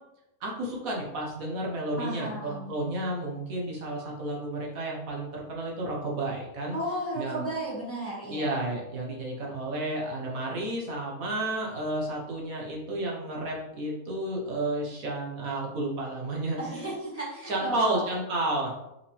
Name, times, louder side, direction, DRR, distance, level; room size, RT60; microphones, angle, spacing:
voice 1, 0.4-6.8 7.2-7.4 8.3-16.6 17.5-18.7, right 1 dB, 65° right, -2 dB, 1.8 m, -31 dB
voice 2, 2.0-2.7 6.7-8.5 16.6-18.1, right 1 dB, 10° left, -5 dB, 1.5 m, -34 dB
5.6 x 5.1 x 3.4 m, 0.89 s
omnidirectional pair, 1.6 m